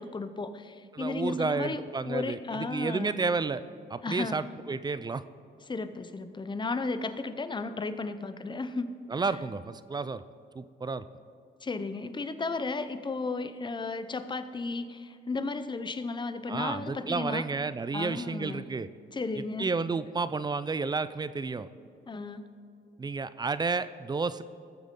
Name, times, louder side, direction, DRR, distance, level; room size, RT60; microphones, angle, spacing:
voice 1, 0.0-3.2 4.0-4.4 5.7-8.9 11.6-17.4 17.9-18.7 19.1-19.7 22.1-22.5, left 3 dB, 25° left, 11 dB, 0.7 m, -34 dB
voice 2, 0.9-3.6 3.9-5.2 9.1-10.2 10.6-11.0 16.5-18.9 19.6-21.7 23.0-24.4, right 4 dB, 20° right, 14 dB, 0.4 m, -31 dB
19.0 x 7.3 x 3.7 m, 2.3 s
cardioid pair, 90°, 20 cm